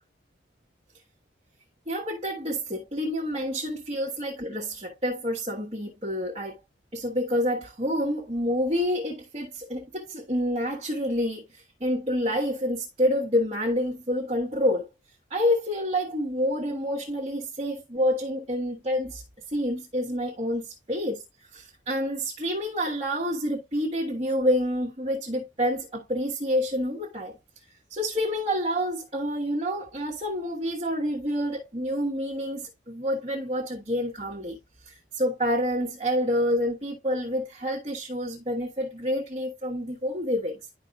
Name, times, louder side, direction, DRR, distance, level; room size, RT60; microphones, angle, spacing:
voice 1, 1.9-6.6 6.9-14.9 15.3-19.2 19.5-21.2 21.5-27.3 27.9-34.6 34.8-40.6, equal, 30° right, 1.3 m, -28 dB
11.0 x 5.0 x 2.4 m
head